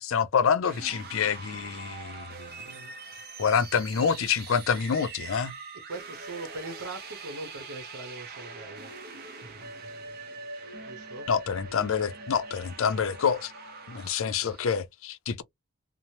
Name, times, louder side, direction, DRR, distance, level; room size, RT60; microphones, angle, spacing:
voice 1, 0.0-2.9 3.4-5.5 11.3-13.5 13.9-15.4, left 6 dB, 65° left, 0.4 m, -27 dB
sound 1, 0.6-14.8, right 4 dB, 45° right, 0.6 m, -43 dB
voice 2, 2.4-2.7 3.0-3.2 5.9-8.9 10.9-11.3 13.9-14.6, right 2 dB, 80° right, 0.8 m, -42 dB
3.0 x 2.0 x 2.7 m
head